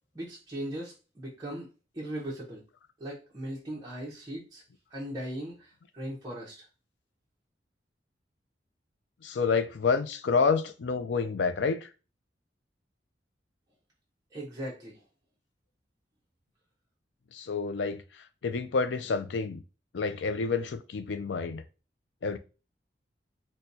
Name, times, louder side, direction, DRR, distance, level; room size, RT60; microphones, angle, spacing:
voice 1, 0.1-1.7 1.9-2.6 3.0-4.6 4.9-6.7 14.3-15.0, right 1 dB, 20° right, 0.8 m, -38 dB
voice 2, 9.2-11.9 17.3-18.0 18.4-19.6 19.9-21.6 22.2-22.4, left 5 dB, 80° left, 0.4 m, -28 dB
4.3 x 2.2 x 2.6 m
head